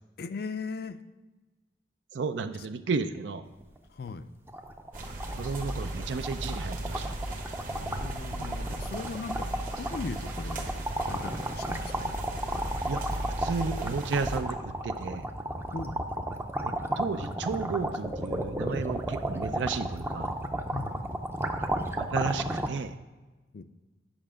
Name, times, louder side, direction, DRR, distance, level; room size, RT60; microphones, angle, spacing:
voice 1, 0.2-1.0 3.9-4.3 7.7-9.5 9.8-10.7 11.0-12.1 15.7-16.0 20.7-21.3 23.5-23.6, left 4 dB, 55° left, 12 dB, 0.4 m, -38 dB
voice 2, 2.1-3.4 5.3-7.1 12.9-13.0 13.4-15.3 16.6-20.3 22.0-23.0, right 4 dB, 75° right, 9 dB, 0.4 m, -33 dB
sound 1, 3.6-3.8 4.1-4.2 4.5-22.7, right 1 dB, 10° right, 0.5 m, -33 dB
sound 2, 4.9-14.4, right 1 dB, 45° right, 1.2 m, -36 dB
8.9 x 5.8 x 4.9 m, 1.2 s
head